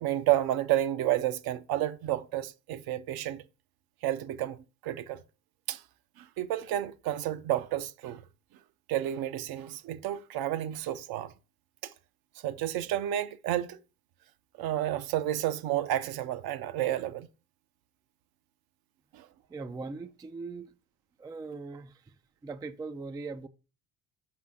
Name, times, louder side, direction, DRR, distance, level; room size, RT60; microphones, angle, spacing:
voice 1, 0.0-3.4 4.0-5.2 5.7-5.8 6.2-8.2 8.9-11.3 11.8-11.9 12.4-13.8 14.6-17.3 19.1-19.3, right 13 dB, 55° right, 0.7 m, -31 dB
voice 2, 19.5-20.7 21.2-23.5, right 4 dB, 10° right, 0.3 m, -40 dB
6.1 x 5.4 x 3.6 m
hypercardioid pair, 65°, 44 cm